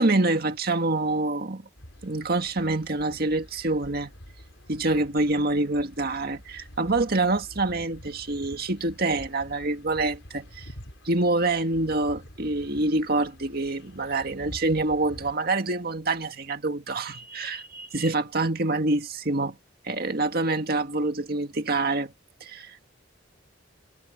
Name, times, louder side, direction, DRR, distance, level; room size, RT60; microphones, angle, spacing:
voice 1, 0.0-1.6 2.0-4.1 4.7-10.7 11.1-19.6 19.8-22.1 22.4-22.8, right 2 dB, 55° right, 1.9 m, -26 dB
sound 1, 1.8-15.3, equal, 85° left, 5.6 m, -47 dB
head